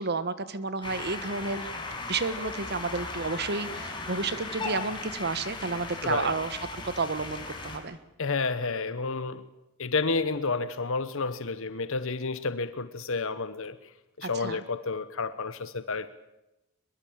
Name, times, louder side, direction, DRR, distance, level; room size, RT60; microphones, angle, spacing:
voice 1, 0.0-8.0 14.2-14.6, right 3 dB, 50° right, 13 dB, 1.5 m, -31 dB
sound 1, 0.8-7.8, left 3 dB, 20° left, 5.9 m, -37 dB
voice 2, 8.2-9.4 9.8-13.8 14.2-16.1, left 4 dB, 65° left, 12 dB, 1.1 m, -30 dB
23.0 x 22.0 x 8.9 m, 0.94 s
head